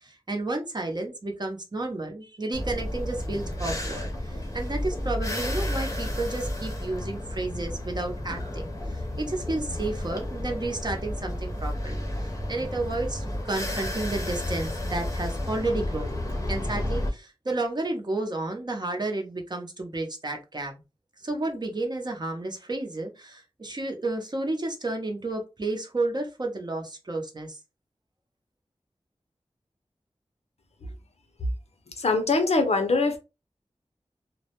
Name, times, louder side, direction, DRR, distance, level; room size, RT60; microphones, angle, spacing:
voice 1, 0.0-16.2 16.5-20.8 21.2-27.6, right 2 dB, 40° right, 3 dB, 0.6 m, -31 dB
sound 1, 2.5-17.1, left 1 dB, 30° left, 0.6 m, -32 dB
voice 2, 32.0-33.2, left 3 dB, 75° left, 6 dB, 0.5 m, -22 dB
2.2 x 2.1 x 2.8 m, 0.28 s
wide cardioid pair, 75°, 11 cm